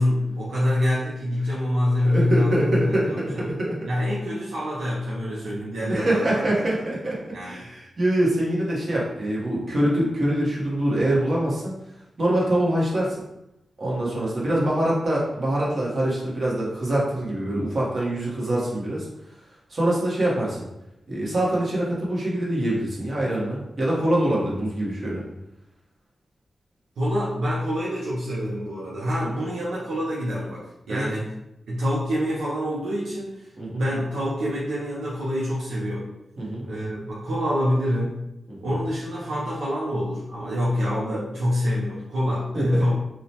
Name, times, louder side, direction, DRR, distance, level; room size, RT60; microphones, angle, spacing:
voice 1, 0.0-3.5 3.9-6.4 7.3-7.6 27.0-31.3 31.7-36.1 36.6-38.2 38.6-42.9, left 1 dB, 90° right, -7 dB, 0.5 m, -26 dB
voice 2, 2.0-3.8 5.9-11.7 12.2-13.2 13.8-19.1 19.7-20.7 21.1-25.2 29.2-29.5 30.9-31.1 33.6-33.8 36.4-36.6 38.5-38.7 42.5-42.6, right 1 dB, 50° right, -5 dB, 1.0 m, -24 dB
2.8 x 2.1 x 2.8 m, 0.88 s
cardioid pair, 55°, 0 cm